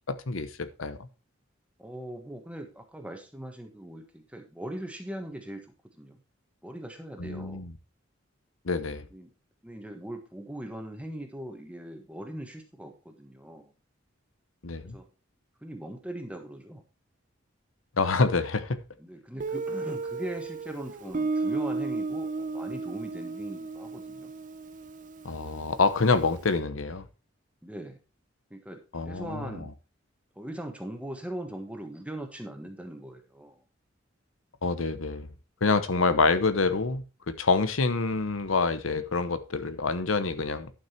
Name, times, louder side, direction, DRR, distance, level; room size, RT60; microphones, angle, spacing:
voice 1, 0.1-1.0 7.2-7.7 8.6-9.1 14.6-15.0 18.0-18.8 25.2-27.1 28.9-29.7 34.6-35.3 35.6-40.7, left 4 dB, 85° left, 0.9 m, -27 dB
voice 2, 1.8-6.2 6.6-7.6 9.1-9.3 9.6-13.7 14.9-15.1 15.6-16.8 19.0-24.3 27.6-28.0 28.5-29.7 30.3-33.6 35.9-36.2, right 1 dB, 5° right, 1.4 m, -40 dB
Guitar, 19.4-26.1, right 3 dB, 40° right, 0.8 m, -34 dB
11.5 x 6.0 x 4.4 m
head